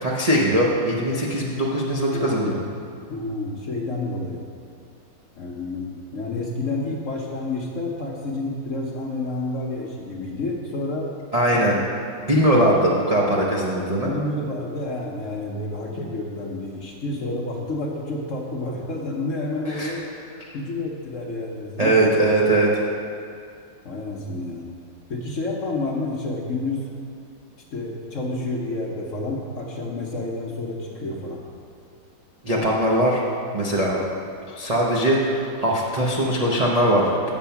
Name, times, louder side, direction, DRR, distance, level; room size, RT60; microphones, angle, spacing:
voice 1, 0.0-2.5 11.3-11.8 12.2-14.1 19.7-19.9 21.8-22.7 32.4-33.2 33.5-34.0 34.5-37.3, right 1 dB, 75° right, -5 dB, 0.3 m, -20 dB
voice 2, 2.1-2.6 3.1-4.4 5.4-11.1 11.5-11.8 14.0-20.0 20.5-22.0 23.8-24.7 25.1-26.9 27.7-31.4, left 2 dB, 55° left, -1 dB, 1.0 m, -29 dB
7.4 x 7.1 x 5.7 m, 2.3 s
omnidirectional pair, 2.1 m